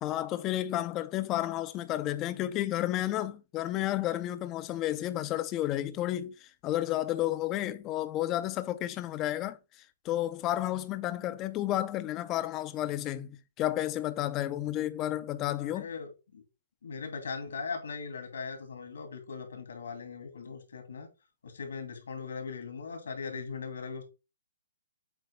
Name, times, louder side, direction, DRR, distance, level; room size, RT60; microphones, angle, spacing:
voice 1, 0.0-9.6 10.0-15.9, left 14 dB, 20° left, 0.4 m, -31 dB
voice 2, 15.6-16.4 16.8-21.1 21.4-24.0, left 5 dB, 80° left, 2.3 m, -39 dB
7.6 x 2.6 x 5.2 m
hypercardioid pair, 170°, 0 cm